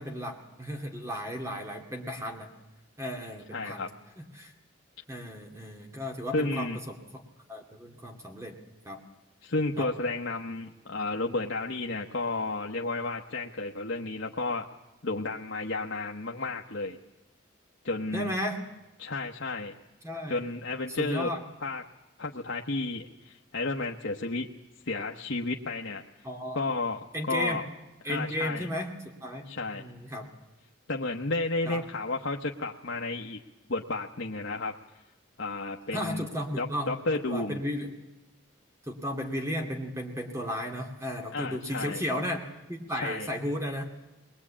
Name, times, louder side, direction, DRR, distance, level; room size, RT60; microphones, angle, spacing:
voice 1, 0.0-2.5 3.0-3.9 4.2-4.5 5.1-7.0 7.5-8.5 8.8-9.0 9.8-9.9 18.1-18.6 20.0-20.4 21.0-21.4 26.2-26.7 27.1-27.6 28.0-28.9 29.2-29.4 29.7-30.3 31.7-31.8 35.9-37.9 38.8-42.4 42.7-43.8, equal, 15° right, 3 dB, 2.4 m, -34 dB
voice 2, 3.5-3.9 6.3-6.8 9.4-14.7 15.0-17.0 17.8-18.3 19.0-19.7 20.3-21.3 21.6-21.8 22.2-24.5 24.8-26.0 26.5-27.6 28.0-28.7 29.5-29.9 30.9-33.4 33.7-34.7 35.4-36.3 36.6-37.6 41.3-42.0 42.9-43.3, left 2 dB, 65° left, 1 dB, 1.2 m, -32 dB
21.5 x 21.5 x 8.7 m, 1.0 s
head